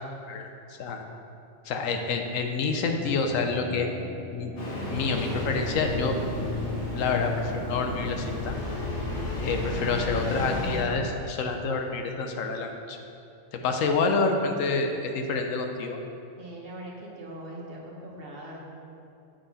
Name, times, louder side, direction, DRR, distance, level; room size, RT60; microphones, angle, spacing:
voice 1, 0.3-1.0 1.6-3.9 4.3-4.5 4.9-6.2 6.9-8.5 9.4-13.0 13.5-16.0, left 4 dB, 90° left, 4 dB, 1.1 m, -28 dB
sound 1, 2.6-6.6 8.4-9.1, left 1 dB, 30° left, 0.7 m, -44 dB
Engine starting, 4.6-10.8, left 2 dB, 60° left, 1.6 m, -32 dB
voice 2, 16.4-18.6, right 1 dB, 50° right, -3 dB, 1.3 m, -41 dB
7.8 x 5.8 x 4.1 m, 2.7 s
omnidirectional pair, 1.3 m